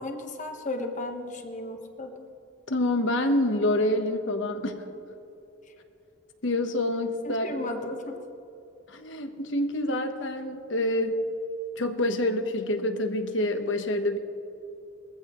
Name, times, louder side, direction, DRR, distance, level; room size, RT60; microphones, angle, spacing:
voice 1, 0.0-2.1 7.2-8.2, left 2 dB, 40° left, 4 dB, 1.3 m, -34 dB
voice 2, 2.7-4.9 6.4-7.6 8.9-11.2 11.8-14.2, left 1 dB, 75° left, 6 dB, 1.2 m, -27 dB
21.0 x 15.0 x 3.1 m, 2.8 s
head